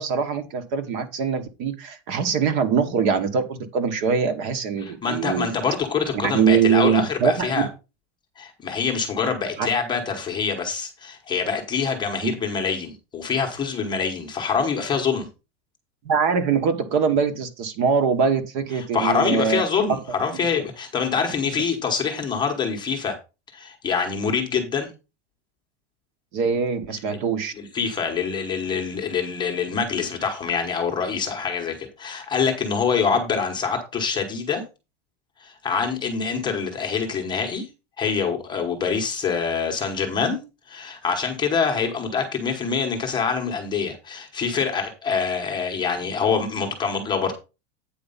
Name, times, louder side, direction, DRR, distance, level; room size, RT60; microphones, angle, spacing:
voice 1, 0.0-5.5 6.1-7.7 9.6-9.7 16.0-19.6 26.3-27.5, right 6 dB, 40° right, 9 dB, 1.2 m, -23 dB
voice 2, 4.8-7.7 8.4-15.3 18.9-23.2 23.5-24.9 27.1-27.2 27.5-34.6 35.4-37.7 38.0-40.4 40.7-47.3, left 6 dB, 10° left, 3 dB, 1.0 m, -25 dB
8.7 x 4.6 x 5.5 m, 0.29 s
supercardioid pair, 180°, 36 cm